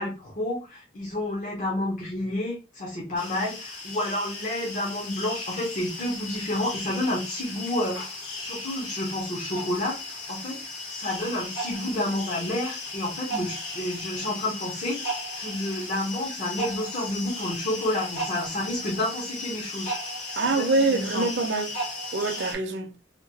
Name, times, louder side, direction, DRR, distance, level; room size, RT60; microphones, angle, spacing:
voice 1, 0.0-15.0 15.4-19.9 20.6-21.2, left 1 dB, 40° left, 0.7 m, -30 dB
sound 1, 3.1-22.5, left 1 dB, 85° left, 1.6 m, -36 dB
voice 2, 20.4-21.8 22.1-22.9, right 3 dB, 65° right, 0.5 m, -25 dB
2.9 x 2.2 x 2.7 m
head